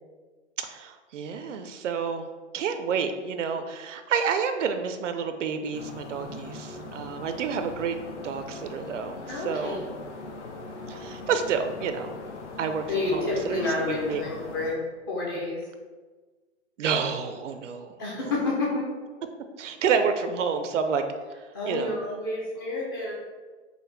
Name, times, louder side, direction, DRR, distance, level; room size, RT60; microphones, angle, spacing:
voice 1, 0.6-2.3 2.5-8.0 8.2-9.9 10.9-12.1 12.6-14.2 16.8-18.3 19.6-21.1 21.7-22.0, right 6 dB, 85° right, 8 dB, 0.6 m, -29 dB
sound 1, 5.7-14.8, left 2 dB, 75° left, 0.7 m, -40 dB
voice 2, 9.3-9.8 12.9-14.8 15.1-15.6 18.0-18.9 21.5-23.1, left 2 dB, 20° left, -3 dB, 0.4 m, -29 dB
4.9 x 2.2 x 3.2 m, 1.4 s
hypercardioid pair, 155°, 36 cm